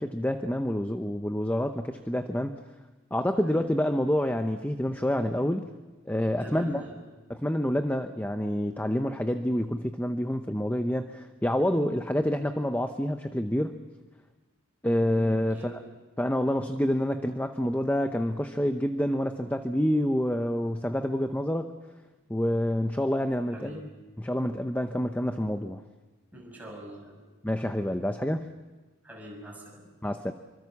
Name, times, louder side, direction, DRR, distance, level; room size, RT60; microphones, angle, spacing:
voice 1, 0.0-2.6 3.1-5.7 6.0-6.8 7.3-13.8 14.8-15.6 16.2-21.7 22.3-23.7 24.2-25.8 27.4-28.5 30.0-30.3, equal, 10° left, 7 dB, 0.7 m, -27 dB
voice 2, 6.4-7.0 15.5-15.8 23.5-23.9 26.3-27.2 29.0-29.9, right 1 dB, 10° right, -1 dB, 6.2 m, -44 dB
25.5 x 24.5 x 7.2 m, 1.2 s
head